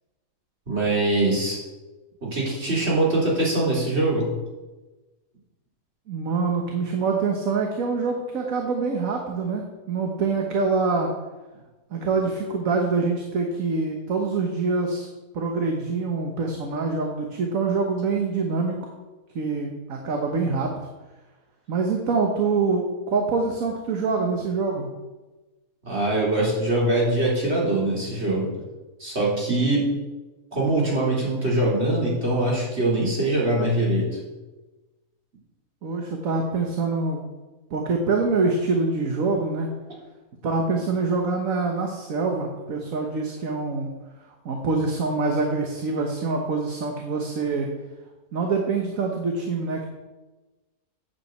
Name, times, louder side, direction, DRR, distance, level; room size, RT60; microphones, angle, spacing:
voice 1, 0.7-1.6 2.2-4.3 25.9-28.5 29.0-29.9 30.5-34.2, right 2 dB, 45° right, -4 dB, 3.9 m, -23 dB
voice 2, 6.1-11.1 11.9-15.1 15.3-18.9 19.3-20.7 21.7-24.9 35.8-37.2 37.7-39.7 40.4-43.9 44.4-47.7 48.3-49.9, right 4 dB, 60° right, 2 dB, 1.6 m, -25 dB
8.9 x 7.4 x 8.0 m, 1.2 s
omnidirectional pair, 1.6 m